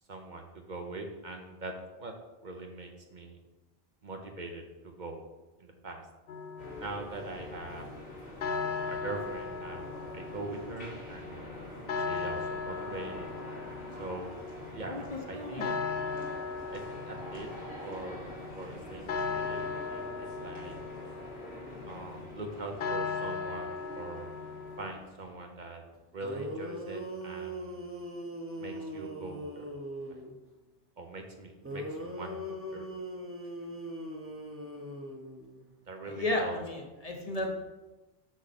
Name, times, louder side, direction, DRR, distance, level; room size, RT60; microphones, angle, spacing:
voice 1, 0.1-2.1 2.4-3.4 4.0-5.2 5.6-6.0 6.8-7.9 8.9-11.6 12.1-13.3 14.0-14.3 14.7-15.7 16.7-17.5 17.8-20.8 21.9-24.3 24.8-25.8 26.1-27.9 28.6-29.7 30.1-30.2 31.0-32.9 35.9-36.6, right 2 dB, 50° right, 3 dB, 0.9 m, -42 dB
sound 1, 6.3-24.9, left 5 dB, 65° left, 0.8 m, -38 dB
sound 2, 6.6-25.6, equal, 85° left, 2.8 m, -46 dB
voice 2, 14.9-15.7 36.0-37.5, left 1 dB, 40° left, 1 dB, 0.9 m, -34 dB
sound 3, 25.9-26.0 26.2-30.4 31.6-35.7, equal, 15° right, 0.8 m, -40 dB
6.6 x 6.3 x 4.2 m, 1.1 s
omnidirectional pair, 1.1 m